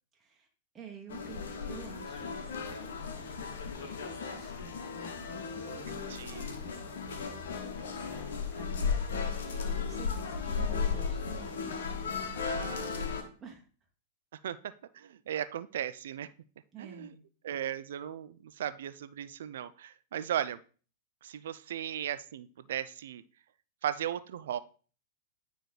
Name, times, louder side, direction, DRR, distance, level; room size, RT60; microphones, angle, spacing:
voice 1, 0.1-0.5 0.7-8.9 9.8-13.7 16.7-17.2, right 5 dB, 20° right, 0 dB, 1.2 m, -51 dB
sound 1, 1.1-13.2, left 5 dB, 70° left, 1.0 m, -35 dB
voice 2, 5.9-6.6 9.4-9.7 12.4-13.2 14.4-16.3 16.8-17.1 17.4-20.6 21.2-23.2 23.8-24.6, right 10 dB, 70° right, 14 dB, 0.4 m, -37 dB
9.3 x 3.1 x 4.0 m, 0.39 s
hypercardioid pair, 100°, 0 cm